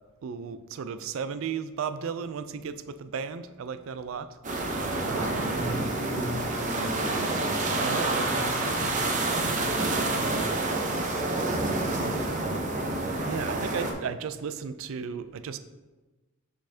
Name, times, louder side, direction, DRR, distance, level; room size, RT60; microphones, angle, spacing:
voice 1, 0.2-4.3 5.0-5.5 7.8-8.1 8.6-9.1 13.2-15.6, right 6 dB, 70° right, 12 dB, 0.4 m, -35 dB
sound 1, 4.4-13.9, right 2 dB, 35° right, 0.7 m, -28 dB
voice 2, 5.0-9.8 10.1-10.7 11.3-12.5, equal, 10° left, -12 dB, 1.8 m, -38 dB
6.8 x 5.4 x 2.7 m, 1.2 s
head